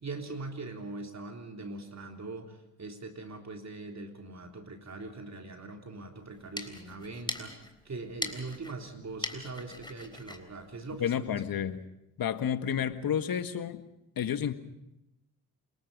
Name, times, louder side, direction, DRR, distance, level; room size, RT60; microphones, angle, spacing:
voice 1, 0.0-11.1, right 3 dB, 40° right, 3 dB, 3.4 m, -41 dB
sound 1, 6.3-11.6, left 1 dB, 10° left, 3.8 m, -42 dB
voice 2, 11.0-11.8 12.2-13.8 14.1-14.5, left 8 dB, 55° left, 10 dB, 1.8 m, -30 dB
29.0 x 21.5 x 5.4 m, 0.88 s
hypercardioid pair, 50°, 42 cm